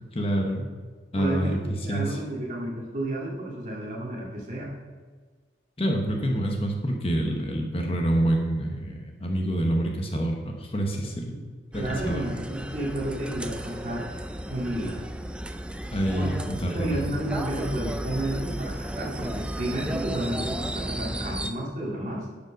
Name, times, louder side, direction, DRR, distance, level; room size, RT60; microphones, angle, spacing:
voice 1, 0.1-0.7 1.1-1.6 1.9-2.2 5.8-11.3 11.7-12.2 15.9-17.2, right 1 dB, 30° left, 1 dB, 1.1 m, -27 dB
voice 2, 1.1-4.7 11.8-14.1 14.5-15.0 16.1-16.3 16.7-22.3, right 1 dB, 40° right, -4 dB, 2.2 m, -31 dB
sound 1, 11.7-21.5, right 1 dB, 5° right, 0.3 m, -34 dB
11.0 x 5.2 x 5.2 m, 1.5 s
head